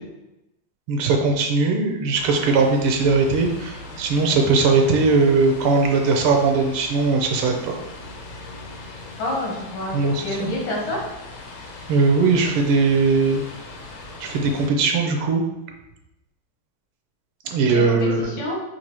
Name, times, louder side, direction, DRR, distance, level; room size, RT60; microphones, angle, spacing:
voice 1, 0.9-7.8 9.9-10.5 11.9-13.4 14.2-15.4 17.5-18.3, right 4 dB, 90° right, 3 dB, 1.6 m, -19 dB
sound 1, 2.1-14.7, left 2 dB, 85° left, 1.6 m, -39 dB
voice 2, 9.2-11.0 17.9-18.6, left 1 dB, 55° left, -3 dB, 1.6 m, -28 dB
4.6 x 2.6 x 4.2 m, 0.96 s
omnidirectional pair, 2.3 m